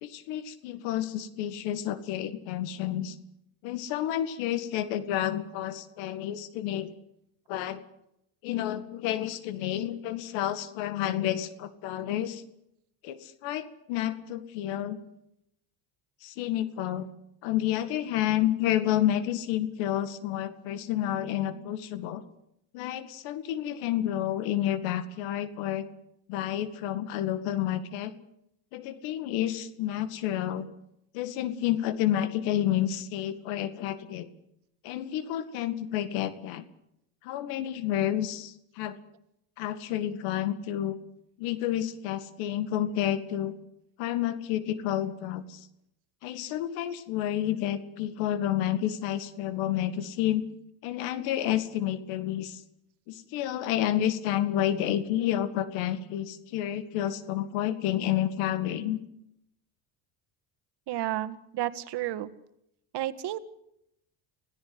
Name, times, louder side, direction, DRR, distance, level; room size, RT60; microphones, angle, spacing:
voice 1, 0.0-3.2 3.6-6.9 7.5-7.8 8.4-12.4 13.0-15.0 16.2-17.1 17.4-22.2 22.7-25.9 26.3-28.1 28.7-30.7 31.1-34.3 34.8-36.6 37.2-39.0 39.6-41.0 41.4-43.5 44.0-45.6 46.2-50.5 50.8-52.6 53.1-59.0, left 12 dB, 85° left, 13 dB, 2.2 m, -30 dB
voice 2, 60.9-62.3 62.9-63.4, right 14 dB, 65° right, 11 dB, 1.7 m, -31 dB
26.0 x 17.0 x 8.0 m, 0.79 s
supercardioid pair, 95°, 44 cm